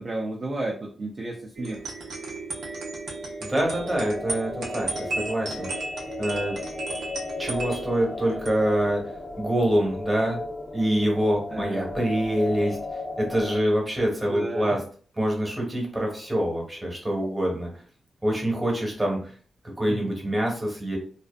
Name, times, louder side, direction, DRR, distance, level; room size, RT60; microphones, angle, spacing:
voice 1, 0.0-1.8 11.5-11.9 14.3-14.8 19.9-20.1, right 2 dB, 40° right, -2 dB, 0.4 m, -32 dB
sound 1, 1.6-9.9, right 3 dB, 85° right, 0.6 m, -35 dB
voice 2, 3.4-5.7 6.2-6.6 7.4-10.4 10.7-14.8 15.1-17.7 18.2-19.3 19.8-21.0, right 1 dB, 15° right, -1 dB, 0.9 m, -25 dB
sound 2, 3.5-13.6, left 2 dB, 25° left, 0.4 m, -36 dB
2.5 x 2.3 x 2.2 m, 0.42 s
wide cardioid pair, 140°, 0 cm